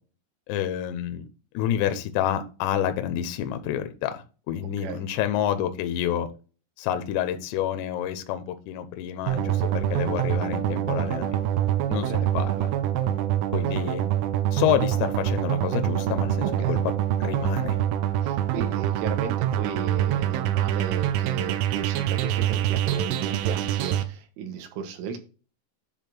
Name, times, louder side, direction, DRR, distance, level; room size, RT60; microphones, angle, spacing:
voice 1, 0.5-1.3 1.5-6.3 6.8-11.4 11.9-12.7 13.5-14.0 14.5-16.8 17.2-17.8, left 10 dB, 80° left, 9 dB, 2.5 m, -28 dB
sound 1, 9.3-24.0, right 11 dB, 90° right, 3.4 m, -25 dB
voice 2, 16.4-16.8 18.2-25.2, right 6 dB, 75° right, 7 dB, 3.7 m, -34 dB
10.0 x 3.6 x 6.0 m, 0.34 s
omnidirectional pair, 5.9 m